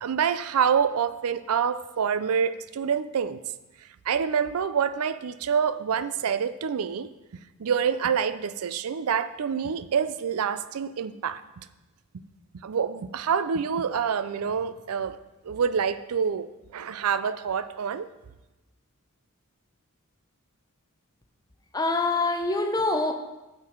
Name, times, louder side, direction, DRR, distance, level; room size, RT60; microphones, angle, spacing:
voice 1, 0.0-3.4 4.1-7.1 7.6-11.4 12.6-15.2 15.4-18.1, right 7 dB, 80° right, 14 dB, 0.4 m, -27 dB
voice 2, 21.7-23.1, left 2 dB, 15° left, 5 dB, 0.7 m, -25 dB
9.3 x 6.6 x 4.5 m, 1.0 s
head